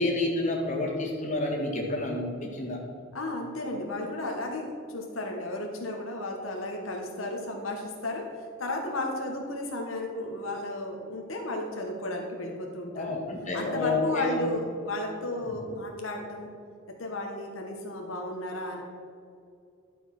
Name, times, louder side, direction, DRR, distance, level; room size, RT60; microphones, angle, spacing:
voice 1, 0.0-2.8 12.9-14.4 15.5-15.6, left 2 dB, 35° left, -2 dB, 1.8 m, -29 dB
voice 2, 3.1-13.2 13.5-16.5 17.0-18.8, left 2 dB, 85° left, 1 dB, 1.4 m, -34 dB
11.0 x 5.4 x 6.0 m, 2.4 s
head